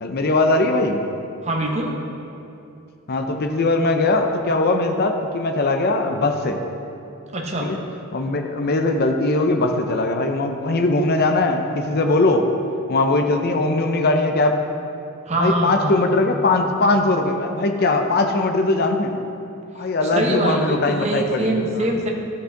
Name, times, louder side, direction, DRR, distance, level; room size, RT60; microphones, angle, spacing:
voice 1, 0.0-1.0 3.1-6.6 7.6-7.8 8.1-12.5 12.9-14.6 15.4-19.1 19.7-21.9, left 2 dB, 45° left, 5 dB, 0.6 m, -20 dB
voice 2, 1.4-2.0 7.3-7.7 15.3-16.1 20.1-22.1, right 1 dB, 30° right, 0 dB, 1.0 m, -23 dB
12.5 x 5.5 x 3.8 m, 2.7 s
head